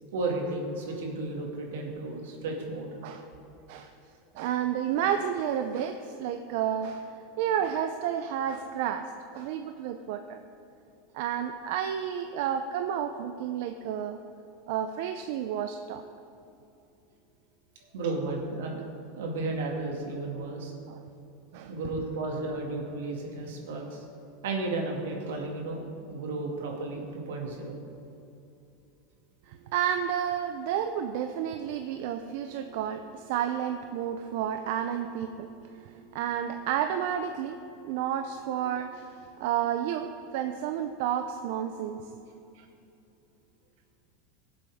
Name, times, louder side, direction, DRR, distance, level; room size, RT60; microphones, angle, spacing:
voice 1, 0.1-2.9 17.8-18.8 19.2-20.7 21.7-24.0 24.4-27.7, right 2 dB, 85° right, 0 dB, 2.2 m, -33 dB
voice 2, 4.3-7.1 7.4-9.1 9.3-10.4 11.1-14.2 14.7-16.0 20.9-21.0 21.5-21.7 29.5-37.6 37.8-42.1 42.5-42.6, right 9 dB, 65° right, 7 dB, 0.5 m, -31 dB
18.0 x 7.7 x 3.6 m, 2.8 s
supercardioid pair, 130°, 0 cm